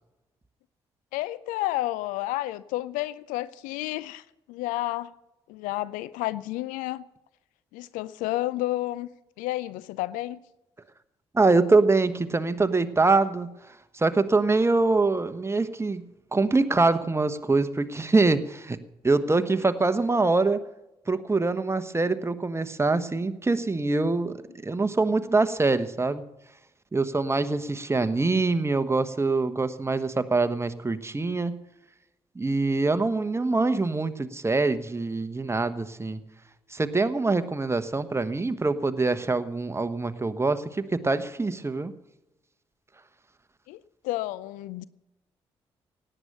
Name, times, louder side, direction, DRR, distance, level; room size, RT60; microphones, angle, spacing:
voice 1, 1.1-5.1 5.5-7.0 7.7-9.1 9.4-10.4 43.7-44.8, left 16 dB, 70° left, 0.5 m, -31 dB
voice 2, 11.3-13.5 13.9-16.0 16.3-18.8 19.0-20.6 21.1-24.4 24.6-26.2 26.9-31.6 32.3-36.2 36.7-41.9, right 3 dB, 20° right, 1.2 m, -24 dB
17.5 x 8.9 x 6.7 m
figure-of-eight pair, 40°, 14 cm